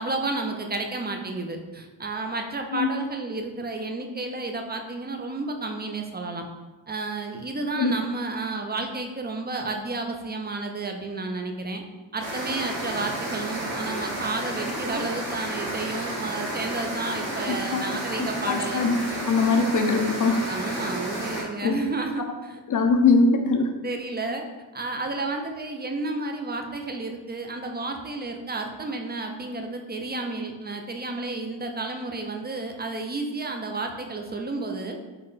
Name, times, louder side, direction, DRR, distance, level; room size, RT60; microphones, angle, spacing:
voice 1, 0.0-6.4 6.9-11.8 12.1-18.9 20.5-22.6 23.8-24.4 24.7-35.0, right 3 dB, 25° right, 4 dB, 0.3 m, -31 dB
sound 1, 12.2-21.4, right 1 dB, 85° right, 1.2 m, -32 dB
voice 2, 17.5-17.8 18.2-19.0 19.3-20.5 21.6-21.7 22.7-23.8, left 4 dB, 45° left, 5 dB, 0.5 m, -22 dB
3.8 x 2.1 x 3.9 m, 1.2 s
wide cardioid pair, 80°, 47 cm